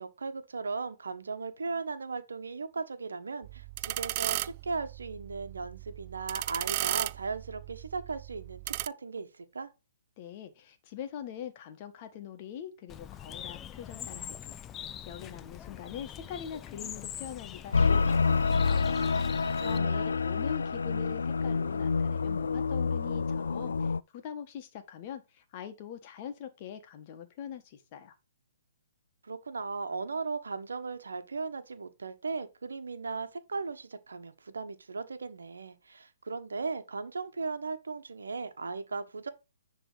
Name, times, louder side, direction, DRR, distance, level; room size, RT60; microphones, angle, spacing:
voice 1, 0.0-9.7 19.4-20.1 29.2-39.3, right 4 dB, 85° right, 1.2 m, -37 dB
sound 1, 3.4-8.9, right 17 dB, 35° right, 0.3 m, -36 dB
voice 2, 10.2-19.0 19.6-28.1, left 9 dB, 35° left, 1.5 m, -43 dB
Bird, 12.9-19.8, left 10 dB, 20° left, 0.5 m, -43 dB
sound 2, 17.7-24.0, left 4 dB, 80° left, 0.3 m, -28 dB
10.0 x 3.5 x 5.0 m
hypercardioid pair, 140°, 0 cm